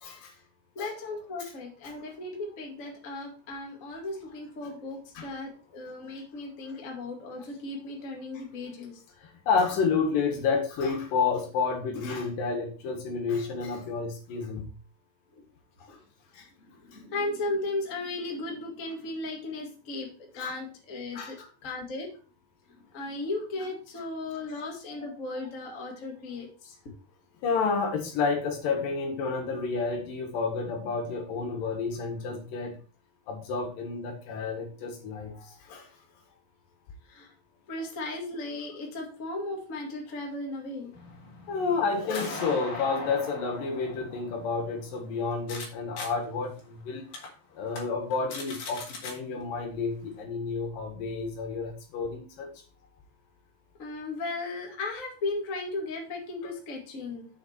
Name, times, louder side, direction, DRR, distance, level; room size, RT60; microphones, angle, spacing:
voice 1, 0.7-9.0 15.3-15.4 15.9-16.0 16.6-20.1 20.3-21.4 21.6-22.1 22.7-26.7 37.0-37.3 37.7-40.9 49.3-49.5 53.8-57.3, left 2 dB, 30° left, 0 dB, 1.6 m, -36 dB
voice 2, 9.5-14.7 20.4-20.5 21.1-21.5 24.9-25.0 27.4-32.7 33.3-35.8 41.5-47.0 47.6-52.5, left 4 dB, 70° left, 3 dB, 3.2 m, -30 dB
sound 1, 40.9-45.7 46.0-46.1 46.6-46.7 47.1-47.3 47.7-47.8 48.1-49.1, left 3 dB, 50° left, 2.7 m, -40 dB
7.0 x 6.6 x 4.3 m, 0.37 s
omnidirectional pair, 4.2 m